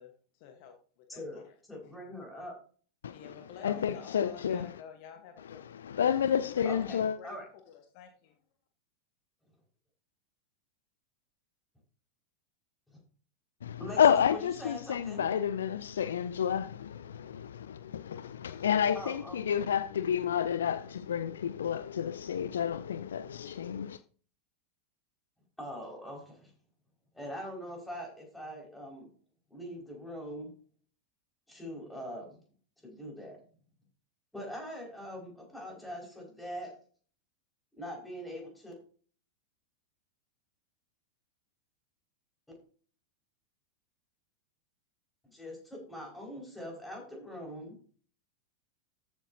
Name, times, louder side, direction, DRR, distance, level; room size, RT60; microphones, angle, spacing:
voice 1, 0.0-1.5 1.8-2.0 3.1-5.8 6.1-7.4 7.7-8.4, left 7 dB, 45° left, 1.3 m, -51 dB
voice 2, 1.1-1.4 1.7-2.6 3.6-4.0 6.6-7.4 12.9-13.0 13.8-15.3 18.9-19.7 25.6-26.5 27.1-29.1 29.5-30.5 31.5-32.4 32.8-33.4 34.3-36.7 37.7-38.7 45.3-47.8, equal, 5° left, 5.4 m, -43 dB
voice 3, 3.0-3.3 3.6-4.7 5.8-7.2 13.6-24.0, left 8 dB, 65° left, 0.4 m, -30 dB
14.0 x 7.9 x 2.8 m
figure-of-eight pair, 90°, 0 cm